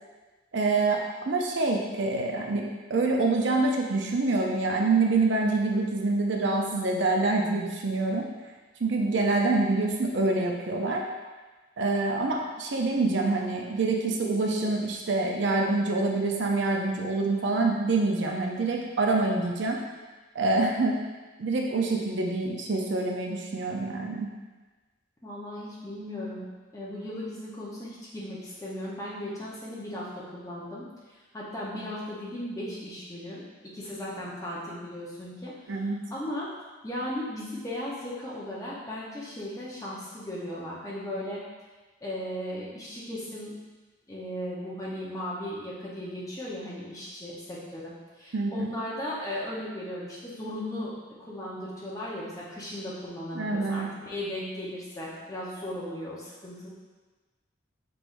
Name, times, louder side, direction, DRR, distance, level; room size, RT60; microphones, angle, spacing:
voice 1, 0.5-8.3 8.8-11.0 11.8-19.8 20.3-21.0 21.4-24.3 35.7-36.0 48.3-48.7 53.3-53.9, right 3 dB, 65° right, 0 dB, 0.5 m, -26 dB
voice 2, 25.2-26.5 26.7-35.8 36.1-36.5 36.8-41.4 42.0-43.5 44.1-56.7, left 1 dB, 15° left, -7 dB, 0.9 m, -37 dB
6.0 x 3.3 x 2.6 m, 1.3 s
head